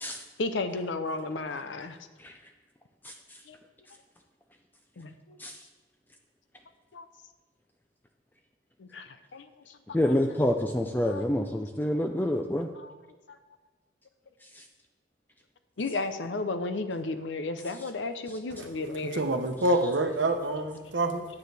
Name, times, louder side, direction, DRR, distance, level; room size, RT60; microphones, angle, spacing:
voice 1, 0.4-2.0 3.5-3.6 5.0-5.4 6.9-7.1 8.8-9.8 11.0-11.2 12.8-12.9 13.3-13.4 15.8-19.2, left 3 dB, 85° left, 0.7 m, -33 dB
voice 2, 9.9-12.7 14.5-14.6, left 1 dB, 10° left, 0.4 m, -27 dB
voice 3, 19.1-21.2, right 2 dB, 85° right, 0.8 m, -26 dB
9.4 x 9.1 x 3.4 m
head